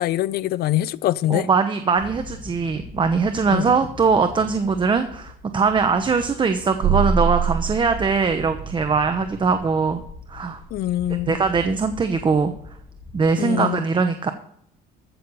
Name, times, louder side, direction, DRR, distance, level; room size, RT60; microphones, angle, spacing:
voice 1, 0.0-1.5 3.5-3.7 10.7-11.4 13.4-13.8, left 14 dB, 65° left, 0.6 m, -23 dB
voice 2, 1.3-10.0 10.3-10.6 11.3-12.5 13.1-14.3, right 5 dB, 30° right, 1.0 m, -21 dB
sound 1, 2.0-13.2, left 3 dB, 30° left, 2.6 m, -41 dB
sound 2, 6.8-9.3, right 6 dB, 70° right, 2.4 m, -24 dB
15.0 x 6.7 x 5.5 m
cardioid pair, 110°, 17 cm